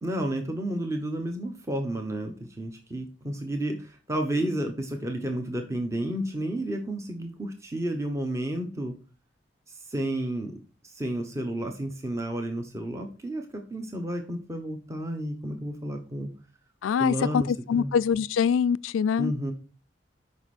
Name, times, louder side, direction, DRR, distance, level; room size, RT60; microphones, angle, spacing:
voice 1, 0.0-8.9 9.9-10.6 10.8-16.3 17.0-18.0 19.2-19.5, right 1 dB, 15° right, 1.0 m, -31 dB
voice 2, 16.8-19.3, left 7 dB, 90° left, 0.3 m, -24 dB
8.1 x 5.3 x 4.2 m
head